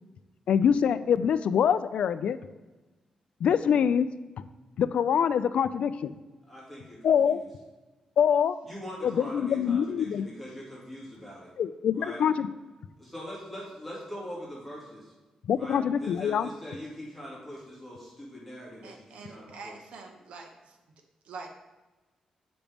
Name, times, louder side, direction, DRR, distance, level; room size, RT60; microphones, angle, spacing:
voice 1, 0.5-2.4 3.4-4.1 4.8-6.1 7.0-7.4 8.2-8.6 9.0-10.3 11.6-12.5 15.5-16.5, left 8 dB, 70° left, 13 dB, 0.3 m, -24 dB
voice 2, 6.5-7.5 8.6-11.5 11.9-12.2 13.0-15.1 15.5-19.8, equal, ahead, -7 dB, 2.2 m, -42 dB
voice 3, 18.8-20.8 21.2-21.5, right 4 dB, 80° right, 3 dB, 0.7 m, -45 dB
7.2 x 5.1 x 3.4 m, 1.2 s
wide cardioid pair, 145°, 2 cm